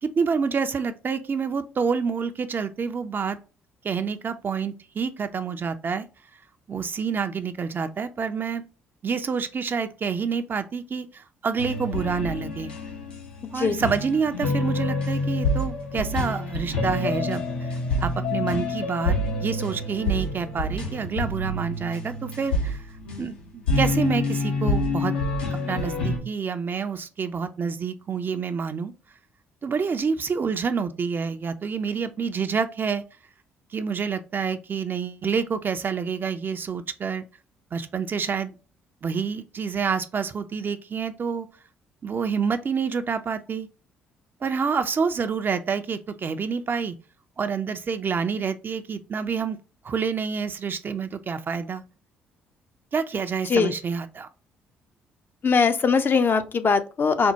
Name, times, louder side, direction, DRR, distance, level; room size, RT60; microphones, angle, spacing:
voice 1, 0.0-3.4 3.8-6.0 6.7-8.6 9.0-12.7 13.5-22.8 23.2-25.1 25.7-28.9 29.6-33.0 33.7-37.2 37.7-38.5 39.0-41.5 42.0-43.7 44.4-46.9 47.4-49.6 49.8-51.8 52.9-54.3, right 5 dB, 40° right, 0.4 m, -28 dB
sound 1, 11.6-26.2, left 2 dB, 85° left, 0.8 m, -27 dB
voice 2, 55.4-57.3, left 5 dB, 40° left, 0.5 m, -21 dB
4.3 x 2.1 x 2.8 m
hypercardioid pair, 50°, 5 cm